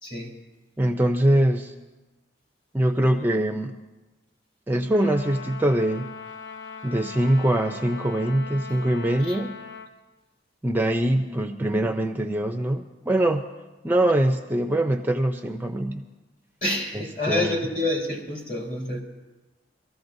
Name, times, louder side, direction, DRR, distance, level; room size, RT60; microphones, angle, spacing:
voice 1, 0.8-1.7 2.7-3.8 4.7-6.1 6.8-9.6 10.6-13.4 13.8-16.0 16.9-17.6, right 1 dB, 10° right, 5 dB, 0.4 m, -23 dB
Trumpet, 4.9-9.9, left 5 dB, 90° left, 1.2 m, -39 dB
voice 2, 16.6-19.0, left 1 dB, 45° left, -2 dB, 3.2 m, -27 dB
23.5 x 14.0 x 2.6 m, 1.1 s
head